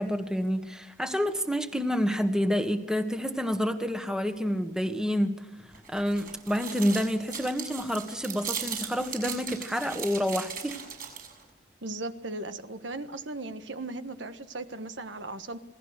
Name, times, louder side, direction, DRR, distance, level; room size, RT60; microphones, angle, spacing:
voice 1, 0.0-10.8, equal, 5° right, 7 dB, 1.4 m, -28 dB
sound 1, 5.7-11.4, right 7 dB, 50° right, 6.6 m, -38 dB
voice 2, 11.8-15.6, right 2 dB, 85° right, 10 dB, 1.4 m, -37 dB
27.5 x 18.5 x 6.7 m, 1.1 s
head